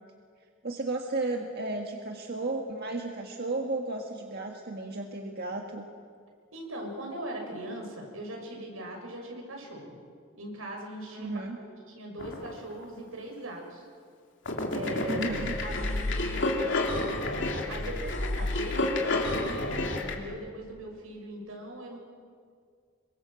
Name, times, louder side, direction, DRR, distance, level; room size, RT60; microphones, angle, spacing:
voice 1, 0.6-5.9 11.1-11.6 15.1-15.6, right 2 dB, 50° right, 2 dB, 1.8 m, -34 dB
voice 2, 6.5-10.0 10.4-13.8 14.7-15.3 15.6-17.3 17.7-22.0, right 1 dB, 85° right, 1 dB, 6.8 m, -40 dB
sound 1, 12.2-12.8 14.5-20.2, left 2 dB, 60° left, 3.0 m, -30 dB
26.5 x 23.5 x 7.7 m, 2.1 s
head